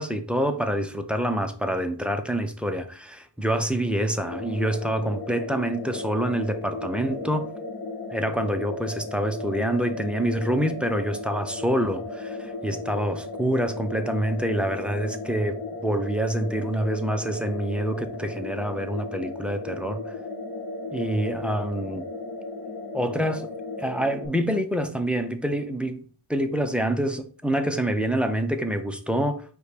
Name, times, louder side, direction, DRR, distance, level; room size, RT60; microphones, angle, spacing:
voice 1, 0.0-7.5 8.1-20.1 20.9-22.1 22.9-23.5 23.8-26.0 26.3-29.4, right 1 dB, ahead, 0.4 m, -26 dB
sound 1, 4.3-24.3, left 3 dB, 45° left, 0.9 m, -35 dB
5.1 x 2.2 x 4.6 m
wide cardioid pair, 95°, 48 cm